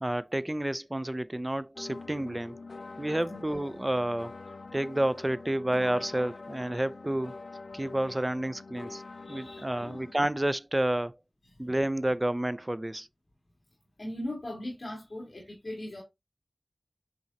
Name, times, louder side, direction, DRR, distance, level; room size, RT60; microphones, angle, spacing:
voice 1, 0.0-2.6 3.0-4.3 4.7-7.4 7.7-9.0 9.3-11.2 11.6-13.1, right 1 dB, 25° right, 0.4 m, -30 dB
sound 1, 1.8-10.1, left 3 dB, 85° left, 0.4 m, -45 dB
voice 2, 3.3-3.7 9.2-10.1 11.6-11.7 14.0-16.0, left 1 dB, 55° left, 2.6 m, -40 dB
8.6 x 3.8 x 2.9 m
wide cardioid pair, 60°, 0 cm